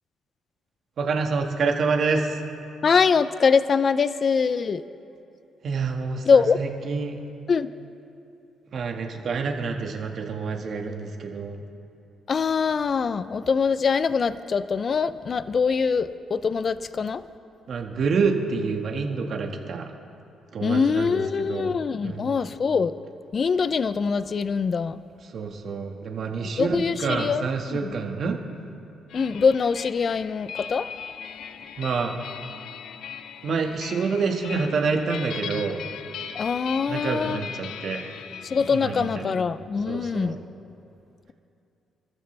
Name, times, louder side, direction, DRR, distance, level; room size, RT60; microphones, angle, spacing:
voice 1, 1.0-2.4 5.6-7.2 8.7-11.6 17.7-19.9 20.5-21.2 21.5-21.7 22.0-22.5 25.2-28.4 31.8-32.1 33.4-35.8 36.9-38.2 38.7-39.3 39.9-40.4, right 4 dB, 60° right, 2 dB, 1.7 m, -27 dB
voice 2, 2.8-4.8 6.3-6.6 7.5-7.7 12.3-17.2 20.6-22.9 23.3-25.0 26.6-27.9 29.1-30.9 36.3-37.4 38.4-40.4, left 5 dB, 45° left, 14 dB, 0.5 m, -23 dB
sound 1, 29.1-39.4, left 8 dB, 75° left, 0.8 m, -39 dB
29.5 x 14.0 x 3.4 m, 2.7 s
cardioid pair, 90°, 0 cm